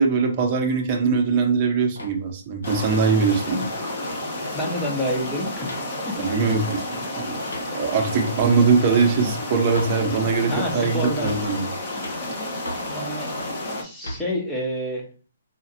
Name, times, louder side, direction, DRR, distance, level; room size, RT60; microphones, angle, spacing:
voice 1, 0.0-3.7 6.2-7.4 7.7-11.7, right 5 dB, 30° right, 2 dB, 0.9 m, -21 dB
sound 1, 2.0-2.2 2.6-2.9 3.3-3.8 4.1-4.2 4.5-5.2 5.6-5.9 6.6-6.8 7.5-7.7 8.3-8.5 9.0-9.2 9.7-10.0 10.5-10.8 11.2-11.5 12.0-12.2 12.6-12.9 13.4-13.6 14.0-14.2, equal, 75° left, 1.6 m, -37 dB
sound 2, 2.6-13.8, left 1 dB, 35° left, 1.2 m, -31 dB
voice 2, 4.5-6.2 10.4-11.4 12.9-13.3 13.8-15.1, equal, 5° left, -1 dB, 1.0 m, -28 dB
5.0 x 2.5 x 2.9 m, 0.38 s
figure-of-eight pair, 135°, 0 cm